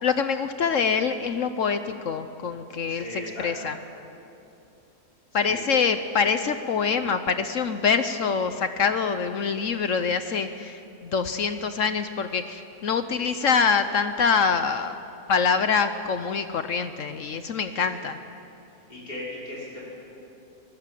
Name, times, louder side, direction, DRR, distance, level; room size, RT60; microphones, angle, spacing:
voice 1, 0.0-3.0 3.4-3.7 5.3-15.0 15.3-18.2, left 5 dB, 60° left, 10 dB, 1.1 m, -25 dB
voice 2, 2.9-3.7 5.4-5.6 13.1-13.8 17.8-18.0 18.9-19.9, left 1 dB, 80° left, -7 dB, 6.7 m, -38 dB
21.5 x 19.0 x 7.6 m, 2.7 s
omnidirectional pair, 1.7 m